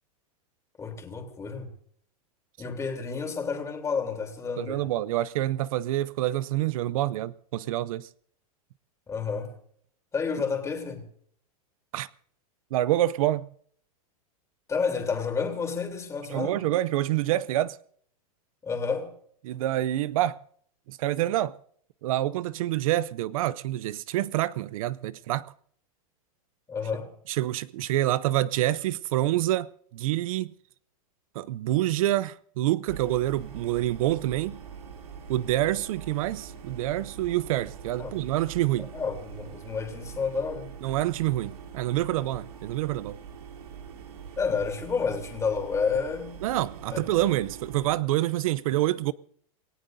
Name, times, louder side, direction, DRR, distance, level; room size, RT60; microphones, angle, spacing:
voice 1, 0.8-1.7 2.6-4.8 9.1-9.5 10.1-11.0 14.7-16.6 18.6-19.1 26.7-27.1 38.0-38.2 38.8-40.7 44.4-46.3 46.9-47.0, left 5 dB, 15° left, 3.2 m, -30 dB
voice 2, 4.6-8.1 11.9-12.1 12.7-13.5 16.3-17.8 19.4-20.4 20.9-21.6 22.0-25.5 27.3-30.5 31.4-34.6 35.3-38.9 40.8-43.2 46.4-49.1, right 14 dB, 65° right, 0.5 m, -27 dB
sound 1, 32.9-47.9, right 7 dB, 85° right, 3.1 m, -43 dB
27.5 x 17.0 x 2.6 m
supercardioid pair, 135°, 19 cm